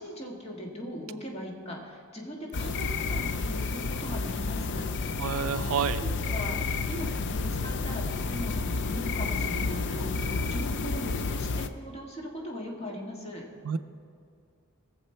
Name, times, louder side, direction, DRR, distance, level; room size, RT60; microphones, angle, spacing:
voice 1, 0.0-4.9 5.8-13.4, equal, 30° left, -1 dB, 1.8 m, -39 dB
sound 1, 2.5-11.7, left 4 dB, 55° left, 0.5 m, -30 dB
voice 2, 5.2-6.0 13.6-13.8, right 7 dB, 70° right, 12 dB, 0.4 m, -29 dB
19.0 x 7.2 x 4.4 m, 2.4 s
head